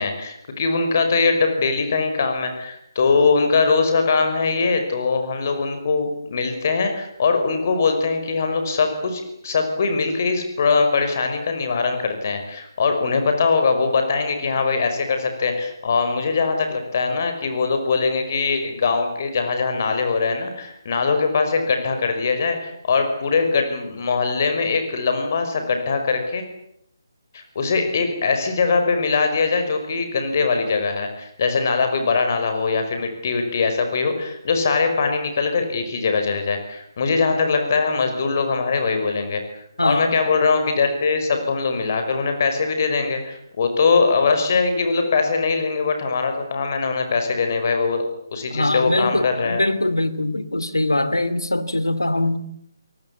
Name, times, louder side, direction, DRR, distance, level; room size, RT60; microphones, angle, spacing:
voice 1, 0.0-26.4 27.3-39.4 39.8-48.0 48.3-49.6, left 4 dB, 40° left, 6 dB, 5.5 m, -21 dB
voice 2, 39.8-40.2 48.5-52.5, left 1 dB, 80° left, 14 dB, 2.7 m, -22 dB
28.5 x 19.5 x 8.5 m, 0.76 s
figure-of-eight pair, 145°, 2 cm